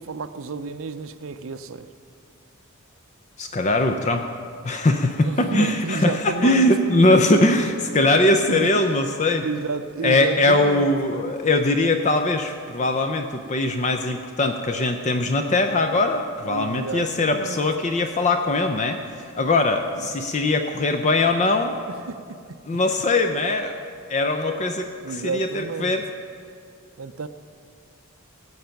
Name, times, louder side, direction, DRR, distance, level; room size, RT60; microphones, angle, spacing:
voice 1, 0.0-1.9 5.2-6.8 8.1-8.8 9.4-10.9 16.5-17.6 19.9-20.1 21.9-22.6 25.0-26.0 27.0-27.3, right 4 dB, 65° right, 12 dB, 0.5 m, -31 dB
voice 2, 3.4-4.2 4.6-9.5 10.0-21.7 22.7-26.0, left 2 dB, 30° left, 6 dB, 0.5 m, -21 dB
18.0 x 8.0 x 5.8 m, 2.3 s
head